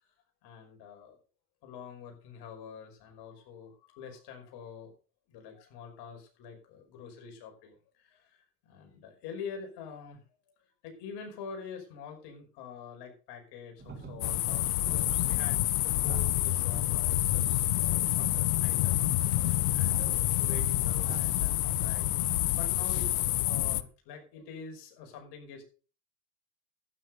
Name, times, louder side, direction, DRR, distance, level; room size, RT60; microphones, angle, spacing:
voice 1, 0.4-1.2 1.6-4.9 5.3-10.2 10.5-10.6 10.8-15.6 15.8-22.0 22.6-25.6, left 6 dB, 55° left, 3 dB, 5.6 m, -46 dB
sound 1, 13.8-22.4, right 4 dB, 20° right, 4.0 m, -46 dB
sound 2, 14.2-23.8, left 15 dB, 75° left, 0.9 m, -28 dB
12.0 x 10.0 x 5.3 m, 0.37 s
hypercardioid pair, 75°, 47 cm